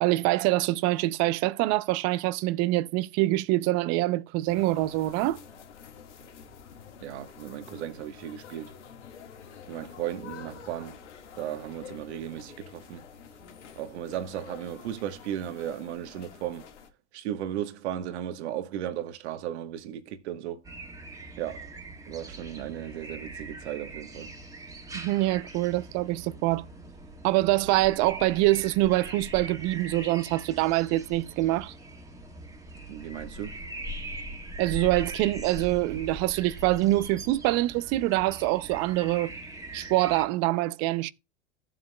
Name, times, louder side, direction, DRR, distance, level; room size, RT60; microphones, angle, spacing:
voice 1, 0.0-5.4 24.9-26.7 27.2-31.7 34.6-39.3 39.7-41.1, right 18 dB, 45° right, 0.6 m, -25 dB
sound 1, 4.5-16.9, left 7 dB, 85° left, 1.8 m, -48 dB
voice 2, 7.0-8.7 9.7-11.0 11.4-13.0 13.8-16.7 17.1-20.6 21.4-21.7 22.1-24.3 32.9-33.6, right 11 dB, 70° right, 1.3 m, -35 dB
sound 2, 20.6-40.3, right 2 dB, 10° right, 1.7 m, -41 dB
14.0 x 7.7 x 2.2 m
hypercardioid pair, 100°, 34 cm